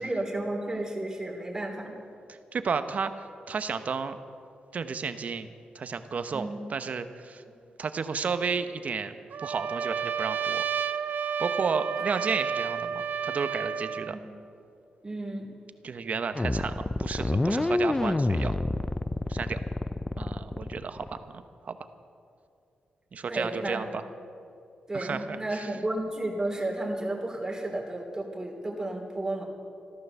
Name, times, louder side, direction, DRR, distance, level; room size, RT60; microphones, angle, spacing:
voice 1, 0.0-2.0 6.3-6.6 14.1-14.2 15.0-15.5 23.3-23.8 24.9-29.5, right 1 dB, 20° right, -1 dB, 3.2 m, -32 dB
voice 2, 2.3-3.1 3.5-4.2 4.7-5.5 5.7-7.4 7.8-9.1 9.4-10.6 11.4-14.2 15.8-18.6 19.3-19.6 20.1-21.8 23.1-24.0 24.9-25.7, right 5 dB, 50° right, 10 dB, 0.9 m, -32 dB
Trumpet, 9.3-14.2, right 7 dB, 70° right, 0.5 m, -31 dB
sound 1, 16.3-21.2, left 2 dB, 15° left, 0.5 m, -27 dB
14.0 x 13.5 x 7.0 m, 2.5 s
cardioid pair, 105°, 3 cm